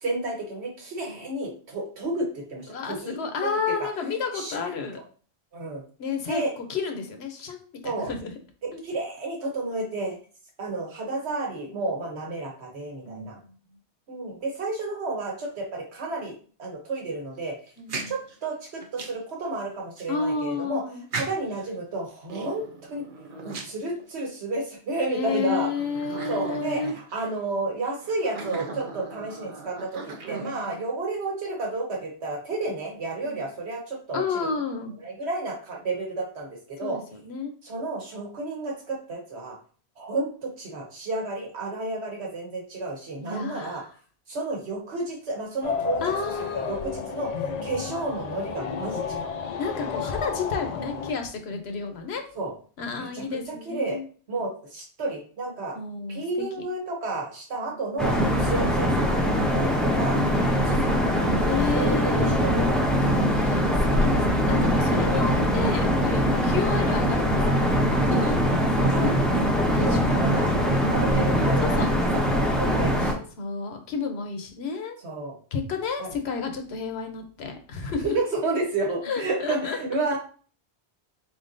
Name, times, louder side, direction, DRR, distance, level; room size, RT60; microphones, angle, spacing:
voice 1, 0.0-3.9 4.3-4.6 5.5-5.8 6.3-6.5 7.8-8.1 8.6-10.2 10.6-13.4 14.1-16.3 16.6-17.6 18.1-20.8 21.1-22.6 22.9-23.0 23.4-25.7 26.3-34.2 35.0-37.0 37.6-39.6 40.0-43.8 44.3-46.0 46.5-47.3 47.6-49.3 52.3-52.5 53.0-54.0 54.3-55.8 56.1-60.2 60.7-63.2 68.2-68.6 68.9-69.3 69.8-70.5 70.9-71.8 72.1-73.2 75.0-75.3 76.0-76.1 78.0-80.2, right 2 dB, 80° right, 0 dB, 1.3 m, -31 dB
voice 2, 2.7-5.0 6.0-6.4 6.7-8.3 8.7-8.8 13.1-13.4 17.8-18.1 20.1-21.0 25.1-26.9 30.3-30.8 33.2-33.5 34.1-34.9 36.8-37.5 43.2-43.9 46.0-46.8 49.6-52.2 52.8-54.0 55.8-56.2 57.5-57.8 58.3-58.7 60.1-60.7 61.5-62.4 63.3-68.4 69.0-69.1 69.7-70.4 71.6-71.9 73.4-75.0 75.5-78.1 79.0-79.8, left 5 dB, 75° left, 5 dB, 1.0 m, -31 dB
sound 1, 17.7-19.3 20.0-20.1 21.1-21.7 22.2-24.4 25.0-25.1 25.7-27.3 28.0-30.8, right 4 dB, 55° right, 0.8 m, -37 dB
sound 2, 45.6-51.1, left 6 dB, 55° left, 0.4 m, -32 dB
sound 3, 58.0-73.1, equal, ahead, 0.4 m, -22 dB
4.1 x 3.6 x 2.6 m, 0.42 s
omnidirectional pair, 1.1 m